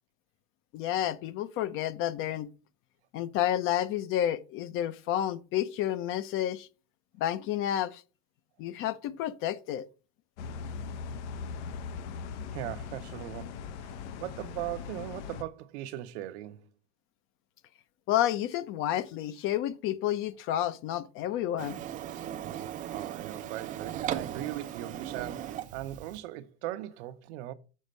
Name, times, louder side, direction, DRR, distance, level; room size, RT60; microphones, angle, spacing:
voice 1, 0.7-2.5 3.1-6.7 7.2-8.0 8.6-9.9 18.1-21.8, left 12 dB, 35° left, 0.6 m, -30 dB
sound 1, 10.4-15.4, left 5 dB, 80° left, 0.9 m, -40 dB
voice 2, 12.5-13.6 14.2-16.7 22.8-27.5, right 14 dB, 70° right, 0.9 m, -39 dB
Printer, 21.6-26.2, right 11 dB, 25° right, 0.4 m, -37 dB
6.5 x 4.2 x 6.5 m
cardioid pair, 165°, 35 cm